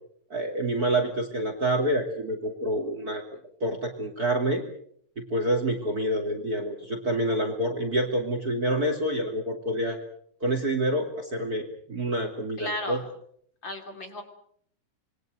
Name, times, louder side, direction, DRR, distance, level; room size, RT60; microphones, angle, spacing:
voice 1, 0.3-3.2 3.6-4.6 5.2-10.0 10.4-13.0, right 1 dB, 30° right, 7 dB, 2.7 m, -27 dB
voice 2, 12.6-13.1 13.6-14.2, left 1 dB, 35° left, 5 dB, 3.6 m, -34 dB
27.0 x 22.5 x 6.5 m, 0.65 s
omnidirectional pair, 3.8 m